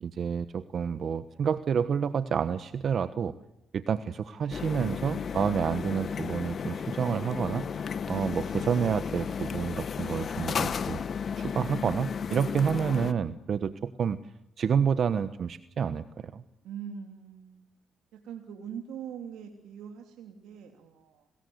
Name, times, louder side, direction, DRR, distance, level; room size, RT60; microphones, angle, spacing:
voice 1, 0.0-3.3 3.7-7.6 8.1-11.0 11.4-14.2 14.6-16.0 16.3-16.4, right 7 dB, 55° right, 12 dB, 1.1 m, -29 dB
sound 1, 4.5-13.1, left 6 dB, 50° left, 1.3 m, -34 dB
voice 2, 16.6-17.7 18.1-21.3, right 8 dB, 85° right, 3 dB, 3.1 m, -42 dB
29.0 x 21.0 x 8.0 m, 0.81 s
cardioid pair, 90°, 0 cm